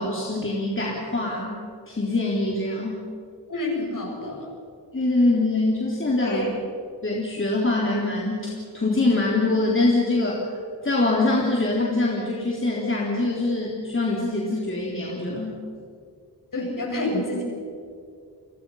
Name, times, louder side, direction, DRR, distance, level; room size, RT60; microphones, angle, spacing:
voice 1, 0.0-1.6 1.9-3.0 4.9-6.4 7.0-10.4 10.8-15.5, left 2 dB, 30° left, -3 dB, 3.8 m, -24 dB
voice 2, 3.5-4.5 6.2-6.5 16.5-17.4, left 1 dB, 45° left, -1 dB, 7.7 m, -28 dB
30.0 x 22.5 x 5.8 m, 2.4 s
wide cardioid pair, 110°, 42 cm